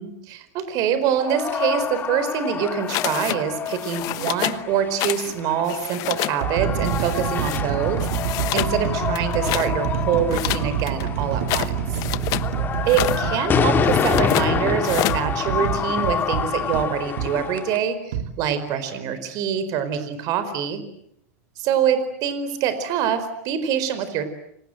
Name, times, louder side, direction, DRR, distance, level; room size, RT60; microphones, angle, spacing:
voice 1, 0.0-8.0 8.5-11.8 12.9-18.0 18.4-20.8 21.6-24.2, right 8 dB, 45° right, 11 dB, 4.6 m, -25 dB
sound 1, 1.2-17.8, left 7 dB, 25° left, 2.0 m, -28 dB
sound 2, 2.9-3.4 3.6-4.6 5.0-5.3 5.6-6.4 6.8-7.6 8.0-8.7 9.1-9.7 10.3-12.5 12.8-13.2 13.9-14.5 14.8-15.2, left 19 dB, 45° left, 1.0 m, -28 dB
sound 3, 4.1-4.4 5.2-5.4 6.0-17.3 18.1-18.3, right 8 dB, 75° right, 4.0 m, -27 dB
29.5 x 25.5 x 7.9 m, 0.76 s
supercardioid pair, 140°, 8 cm